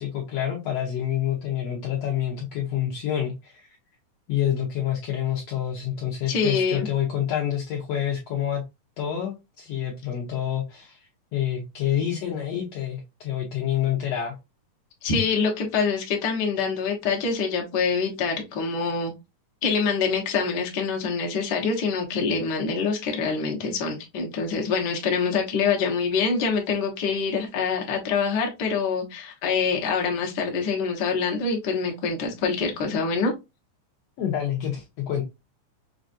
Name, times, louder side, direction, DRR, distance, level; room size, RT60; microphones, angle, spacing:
voice 1, 0.0-3.7 4.3-8.6 9.0-11.1 11.3-14.3 34.2-35.2, left 10 dB, 70° left, 1.6 m, -27 dB
voice 2, 6.3-6.9 15.0-19.1 19.6-33.3, left 5 dB, 55° left, 1.2 m, -25 dB
6.1 x 2.4 x 2.5 m
omnidirectional pair, 3.5 m